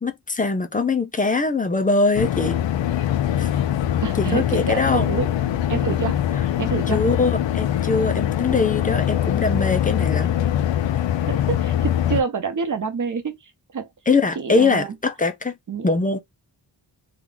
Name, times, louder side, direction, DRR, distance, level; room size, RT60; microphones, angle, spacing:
voice 1, 0.0-2.6 3.4-3.5 4.2-5.1 6.9-10.3 11.0-11.1 14.1-15.6 15.8-16.2, left 3 dB, 20° left, 0.4 m, -22 dB
sound 1, 2.2-12.2, left 11 dB, 80° left, 0.5 m, -23 dB
voice 2, 4.0-5.3 5.7-6.2 6.6-7.0 8.5-8.6 11.3-13.9 14.4-14.9 15.7-15.9, right 5 dB, 45° right, 0.8 m, -27 dB
3.0 x 2.4 x 3.6 m
wide cardioid pair, 165°, 44 cm